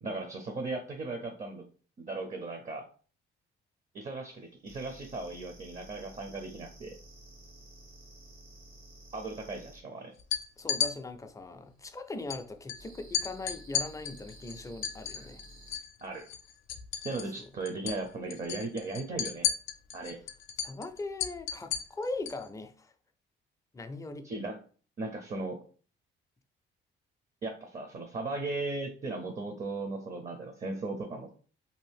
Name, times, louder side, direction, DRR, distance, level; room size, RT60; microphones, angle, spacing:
voice 1, 0.0-1.6 2.0-2.8 3.9-7.0 9.1-10.1 16.0-16.3 17.0-19.5 19.9-20.2 24.2-24.6 25.0-25.6 27.4-31.3, right 3 dB, 35° right, 0.6 m, -37 dB
sound 1, 4.6-9.8 12.7-15.8, right 1 dB, 80° right, 1.0 m, -52 dB
sound 2, 10.2-10.9 12.3-12.4 12.7-12.8 13.1-15.9 16.2-17.4 17.7-18.0 18.3-22.4, left 8 dB, 85° left, 0.4 m, -33 dB
voice 2, 10.6-15.4 17.4-17.5 20.6-22.9 23.7-24.3, left 2 dB, 15° left, 0.4 m, -40 dB
2.7 x 2.4 x 3.4 m
cardioid pair, 90°, 20 cm